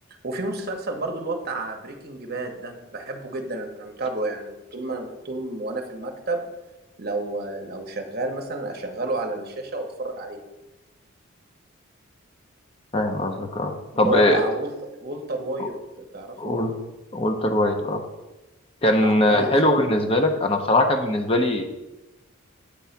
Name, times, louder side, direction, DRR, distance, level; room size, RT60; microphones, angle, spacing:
voice 1, 0.2-6.5 7.0-10.4 13.9-16.6 18.9-19.7, right 2 dB, 45° right, 3 dB, 0.9 m, -31 dB
voice 2, 12.9-14.4 15.6-15.7 16.4-16.8 17.1-18.0 18.8-21.7, left 1 dB, 25° left, 4 dB, 0.7 m, -21 dB
8.3 x 3.1 x 5.7 m, 1.0 s
head